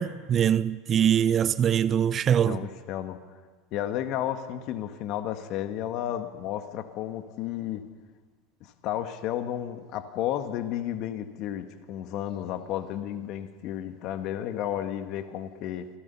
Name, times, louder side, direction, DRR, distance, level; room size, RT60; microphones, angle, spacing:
voice 1, 0.0-2.6, right 9 dB, 40° right, 0.7 m, -23 dB
voice 2, 2.4-3.2 3.7-7.9 8.6-15.9, left 11 dB, 55° left, 1.9 m, -32 dB
28.0 x 17.0 x 5.8 m
hypercardioid pair, 80°, 0 cm